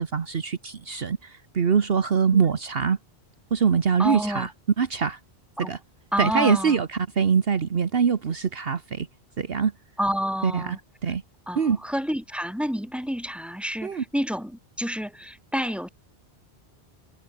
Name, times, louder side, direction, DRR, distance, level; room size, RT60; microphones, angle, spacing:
voice 1, 0.0-3.0 3.5-4.5 4.8-5.2 5.6-5.8 6.2-9.1 9.4-9.7 10.4-10.8 11.0-11.2 11.6-11.8 13.8-14.0, right 6 dB, 60° right, 1.4 m, -23 dB
voice 2, 4.0-4.5 5.6-5.7 6.1-6.8 10.0-10.8 11.5-15.9, equal, ahead, 7.9 m, -29 dB
omnidirectional pair, 1.1 m